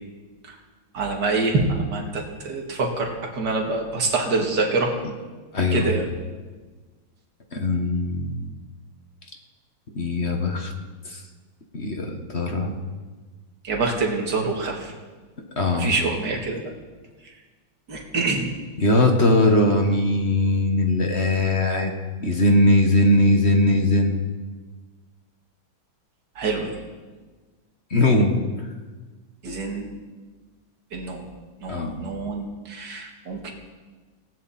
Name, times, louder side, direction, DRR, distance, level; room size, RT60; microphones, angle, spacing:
voice 1, 0.9-4.9 5.7-6.0 13.6-14.9 15.7-16.7 17.9-18.5 26.4-26.7 29.4-29.9 30.9-31.2 31.6-33.5, right 3 dB, 55° right, 0 dB, 2.7 m, -26 dB
voice 2, 5.5-5.9 7.5-8.4 9.9-10.7 11.0-11.2 11.7-12.7 15.6-15.9 18.8-21.9 22.2-24.2 27.9-28.7 29.5-29.6 31.7-32.0, left 1 dB, 35° left, 3 dB, 1.6 m, -20 dB
19.0 x 17.0 x 4.3 m, 1.3 s
omnidirectional pair, 2.2 m